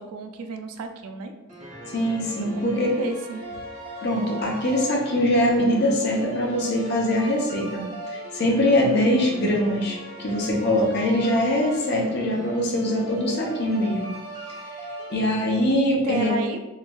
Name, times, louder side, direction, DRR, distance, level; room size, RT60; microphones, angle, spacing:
voice 1, 0.0-1.3 2.4-3.4 16.0-16.7, right 2 dB, 90° right, 6 dB, 0.3 m, -32 dB
sound 1, 1.5-15.8, right 1 dB, 35° right, 0.6 m, -38 dB
voice 2, 1.9-2.9 4.0-14.1 15.1-16.3, left 1 dB, 50° left, -1 dB, 0.6 m, -23 dB
3.0 x 2.5 x 2.2 m, 1.0 s
head